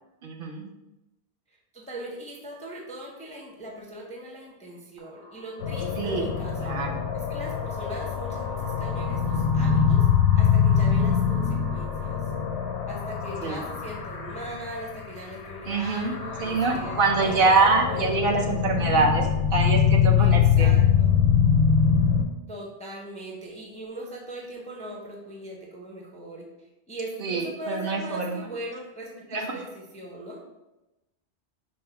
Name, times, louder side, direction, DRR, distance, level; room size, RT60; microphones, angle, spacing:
voice 1, 0.2-0.7 6.0-6.3 6.6-6.9 13.4-13.6 15.7-16.1 16.4-20.7 27.2-28.4 29.3-29.5, right 3 dB, 60° right, 2 dB, 0.7 m, -24 dB
voice 2, 1.5-6.9 7.1-10.1 10.4-12.3 12.9-18.9 20.2-21.2 22.5-26.5 26.9-30.4, right 1 dB, 10° left, -1 dB, 0.4 m, -40 dB
sound 1, 5.0-14.4, equal, 90° right, 1.2 m, -42 dB
sound 2, 5.6-15.1 15.3-22.2, left 7 dB, 85° left, 0.9 m, -23 dB
4.7 x 2.1 x 4.6 m, 0.97 s
omnidirectional pair, 1.1 m